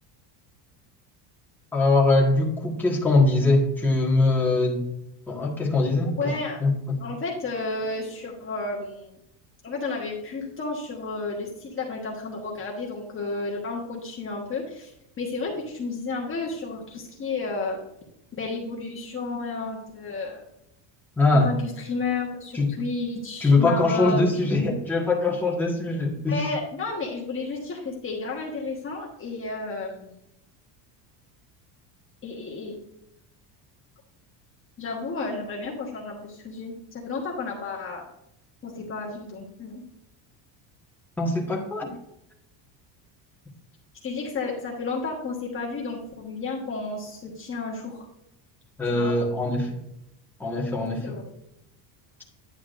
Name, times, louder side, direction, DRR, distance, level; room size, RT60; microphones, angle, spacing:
voice 1, 1.7-4.8 5.3-6.2 6.6-7.0 21.2-21.5 22.5-22.7 23.4-26.5 41.2-41.9 48.8-49.8 50.4-51.2, left 2 dB, 5° left, -3 dB, 1.6 m, -22 dB
voice 2, 6.2-6.6 7.0-9.1 9.6-14.9 15.2-17.8 18.3-20.4 21.3-24.2 26.3-30.2 32.2-32.8 34.8-38.0 38.6-39.8 44.0-48.1 48.9-49.1 51.0-51.3, left 3 dB, 25° left, -2 dB, 1.3 m, -32 dB
9.9 x 8.3 x 2.6 m, 0.81 s
cardioid pair, 150°, 47 cm